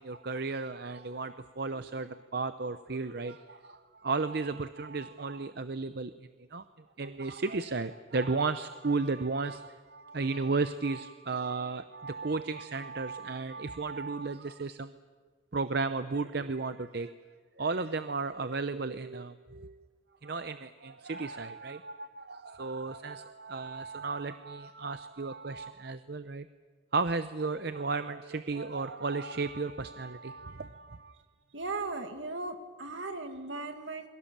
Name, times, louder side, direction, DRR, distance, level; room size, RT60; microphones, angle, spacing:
voice 1, 0.0-6.1 6.5-6.6 7.0-14.9 15.5-17.1 17.6-19.8 20.2-26.5 26.9-31.1, right 3 dB, 55° right, 11 dB, 0.7 m, -34 dB
voice 2, 31.5-34.1, right 3 dB, 70° right, 6 dB, 2.2 m, -37 dB
28.0 x 23.0 x 7.4 m, 1.5 s
head